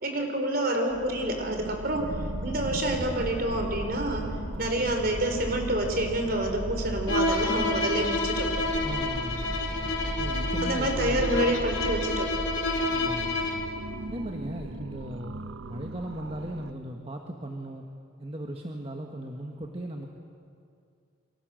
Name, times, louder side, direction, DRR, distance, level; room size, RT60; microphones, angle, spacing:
voice 1, 0.0-2.1 2.4-4.3 4.6-8.5 10.6-12.3, right 1 dB, 45° right, 4 dB, 4.1 m, -28 dB
sound 1, 0.9-16.7, right 2 dB, 80° right, 0.9 m, -39 dB
sound 2, 1.6-11.3, equal, 45° left, 4.4 m, -36 dB
Bowed string instrument, 7.1-13.7, left 2 dB, 65° left, 3.8 m, -29 dB
voice 2, 8.8-9.4 10.2-11.5 12.9-13.4 14.1-17.8 18.2-20.1, right 1 dB, 25° right, 2 dB, 1.5 m, -37 dB
29.5 x 24.0 x 7.7 m, 2.4 s
head